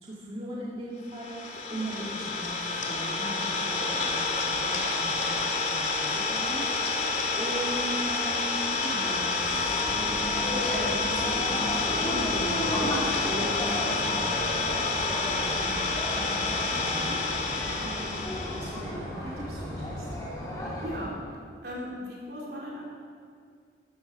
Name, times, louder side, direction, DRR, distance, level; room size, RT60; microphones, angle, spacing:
voice 1, 0.0-20.1, right 1 dB, 35° right, -5 dB, 1.9 m, -39 dB
Idling, 1.1-18.8, left 3 dB, 45° left, 2.1 m, -29 dB
sound 1, 9.3-21.1, equal, 20° left, 3.5 m, -34 dB
voice 2, 20.8-21.2 21.6-22.8, equal, 65° right, -4 dB, 3.8 m, -37 dB
13.0 x 13.0 x 6.3 m, 2.2 s
head